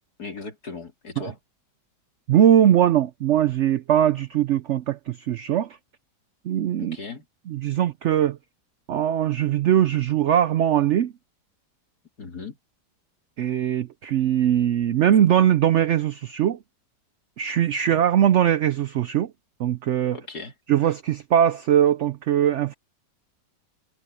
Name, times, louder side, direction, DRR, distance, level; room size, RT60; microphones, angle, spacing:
voice 1, 0.2-1.4 6.8-7.3 12.2-12.6 20.1-21.0, left 4 dB, 65° left, 3.6 m, -38 dB
voice 2, 2.3-5.7 6.4-7.0 7.5-8.4 8.9-11.1 13.4-16.6 17.4-19.3 19.6-20.2 20.7-22.7, right 10 dB, 80° right, 0.6 m, -21 dB
omnidirectional pair, 1.8 m